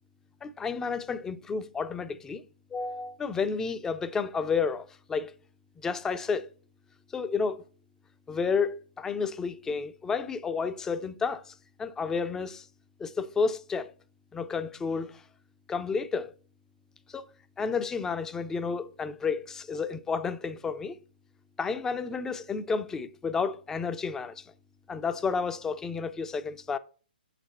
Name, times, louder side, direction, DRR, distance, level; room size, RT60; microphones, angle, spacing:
voice 1, 0.4-2.4 2.7-5.3 5.8-6.5 7.1-7.6 8.3-12.7 13.0-13.9 14.3-15.2 15.7-16.3 17.1-17.2 17.6-21.0 21.6-24.5 24.9-26.8, left 5 dB, 10° left, 0.3 m, -31 dB
7.3 x 4.1 x 4.1 m
figure-of-eight pair, 130°, 5 cm